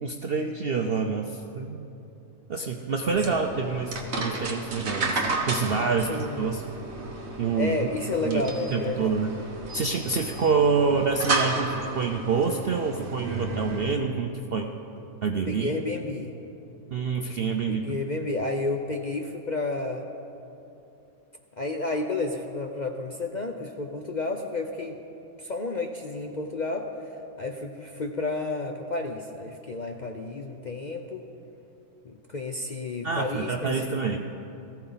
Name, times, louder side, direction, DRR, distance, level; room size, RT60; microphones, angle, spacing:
voice 1, 0.0-1.9 2.5-6.6 7.4-8.0 8.2-9.4 9.7-14.8 15.2-15.8 16.9-18.0 33.0-34.2, right 5 dB, 60° right, 3 dB, 0.6 m, -27 dB
sound 1, 3.1-13.9, right 2 dB, 45° right, 1.4 m, -33 dB
voice 2, 6.0-6.5 7.5-9.2 15.4-16.3 17.7-20.1 21.6-25.0 25.4-26.9 27.4-31.2 32.0-34.0, left 2 dB, 60° left, 3 dB, 0.4 m, -31 dB
19.0 x 14.5 x 4.0 m, 2.9 s
omnidirectional pair, 1.7 m